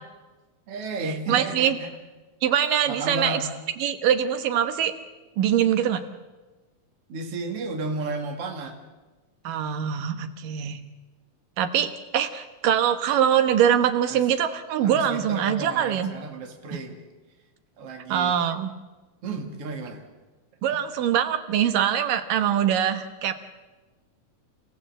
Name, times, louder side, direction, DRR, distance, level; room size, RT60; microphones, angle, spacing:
voice 1, 0.7-1.9 2.9-3.4 7.1-8.7 14.1-14.2 14.8-17.0 17.8-18.3 19.2-20.0 20.7-20.8, right 3 dB, 50° right, 3 dB, 3.1 m, -32 dB
voice 2, 1.3-1.8 2.4-3.4 3.8-4.9 5.4-6.0 9.4-10.8 11.6-16.1 16.7-16.8 18.1-18.7 20.6-23.3, right 9 dB, 90° right, 8 dB, 2.9 m, -23 dB
30.0 x 16.0 x 7.8 m, 1.2 s
omnidirectional pair, 3.7 m